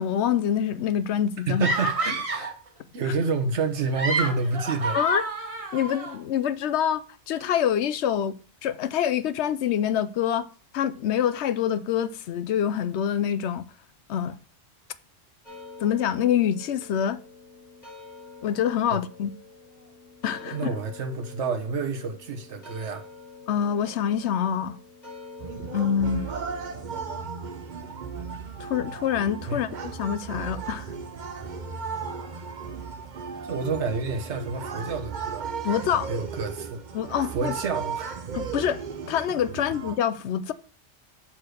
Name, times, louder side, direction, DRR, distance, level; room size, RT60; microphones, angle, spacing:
voice 1, 0.0-1.7 3.1-3.2 4.9-5.2 5.7-8.3 8.6-10.5 10.7-13.7 14.1-14.4 15.8-17.2 18.4-19.3 20.2-20.6 23.5-24.8 25.7-26.3 28.6-30.9 35.6-36.1 36.9-37.6 38.3-40.5, left 9 dB, 80° left, 0.9 m, -26 dB
voice 2, 1.5-2.5 2.9-5.0 20.5-23.0 29.5-29.6 33.4-35.4 36.1-36.8 37.3-38.2 39.6-39.7, right 4 dB, 80° right, 1.3 m, -29 dB
sound 1, 1.6-2.6 3.8-6.2, right 2 dB, 30° right, 1.1 m, -29 dB
sound 2, 15.4-27.2, left 3 dB, 40° left, 2.7 m, -46 dB
sound 3, 25.4-40.0, right 5 dB, 50° right, 0.7 m, -35 dB
6.2 x 4.4 x 6.5 m
omnidirectional pair, 1.2 m